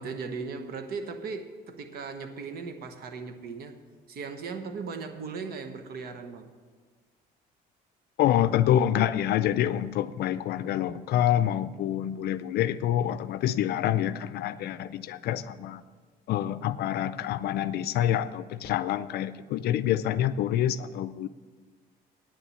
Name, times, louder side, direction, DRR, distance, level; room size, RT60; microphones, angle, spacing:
voice 1, 0.0-3.8 4.1-6.5, right 4 dB, 65° right, 7 dB, 1.2 m, -37 dB
voice 2, 8.2-15.8 16.3-21.3, left 11 dB, 70° left, 13 dB, 0.5 m, -27 dB
9.3 x 7.1 x 8.3 m, 1.5 s
cardioid pair, 110°, 17 cm